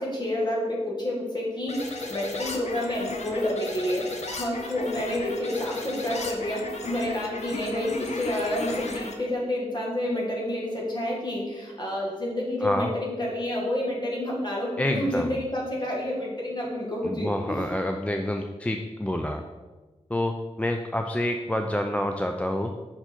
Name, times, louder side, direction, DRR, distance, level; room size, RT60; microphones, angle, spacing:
voice 1, 0.0-17.6, left 1 dB, 40° left, -3 dB, 1.7 m, -29 dB
sound 1, 1.7-9.1, left 2 dB, 70° left, 0.8 m, -35 dB
voice 2, 12.6-12.9 14.8-15.4 17.0-19.4 20.1-22.7, left 1 dB, 10° left, 4 dB, 0.3 m, -28 dB
5.5 x 4.5 x 4.4 m, 1.3 s
wide cardioid pair, 110°, 12 cm